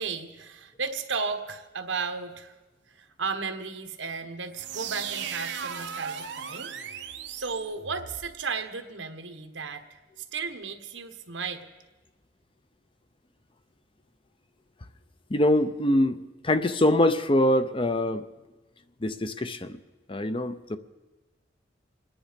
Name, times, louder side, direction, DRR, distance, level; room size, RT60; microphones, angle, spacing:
voice 1, 0.0-2.5 3.0-6.7 7.3-10.0 10.3-11.7, right 4 dB, 90° right, 5 dB, 1.4 m, -34 dB
sound 1, 4.5-8.3, right 7 dB, 65° right, 0.9 m, -37 dB
voice 2, 15.3-16.2 16.4-18.3 19.0-19.8 20.1-20.8, left 1 dB, 30° left, 11 dB, 0.6 m, -24 dB
27.0 x 10.0 x 5.2 m, 1.1 s
head